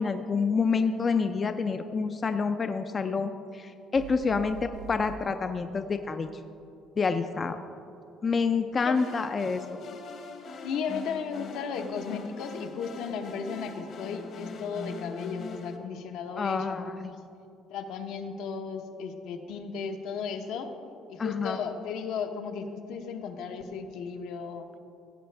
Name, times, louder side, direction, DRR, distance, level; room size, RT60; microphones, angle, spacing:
voice 1, 0.0-6.3 7.0-7.6 8.2-9.8 16.4-16.9 21.2-21.6, left 5 dB, 25° left, 8 dB, 0.3 m, -28 dB
sound 1, 4.0-5.2, right 4 dB, 75° right, 1.0 m, -44 dB
voice 2, 8.7-9.2 10.6-17.2 17.7-20.7 21.1-24.7, left 6 dB, 75° left, 5 dB, 0.9 m, -35 dB
sound 2, 8.9-15.8, left 4 dB, 50° left, 1.0 m, -42 dB
16.0 x 7.8 x 3.3 m, 2.7 s
cardioid pair, 155°, 0 cm